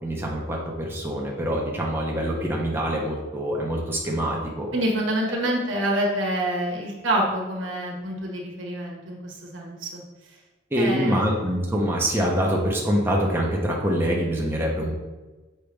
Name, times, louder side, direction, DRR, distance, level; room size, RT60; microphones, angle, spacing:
voice 1, 0.0-4.7 10.7-15.0, equal, 10° right, -3 dB, 1.0 m, -25 dB
voice 2, 4.7-10.0 10.8-11.3, right 1 dB, 80° right, -2 dB, 1.5 m, -27 dB
7.1 x 4.6 x 3.4 m, 1.2 s
head